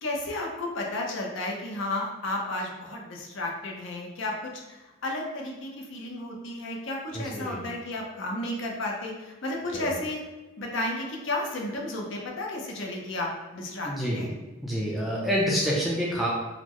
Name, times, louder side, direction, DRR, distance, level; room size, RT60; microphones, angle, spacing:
voice 1, 0.0-10.2 10.6-14.3, left 2 dB, 55° left, -1 dB, 0.6 m, -33 dB
voice 2, 7.1-7.6 9.7-9.9 13.8-14.3 14.6-16.3, equal, ahead, -5 dB, 0.4 m, -27 dB
4.0 x 2.0 x 3.0 m, 1.1 s
head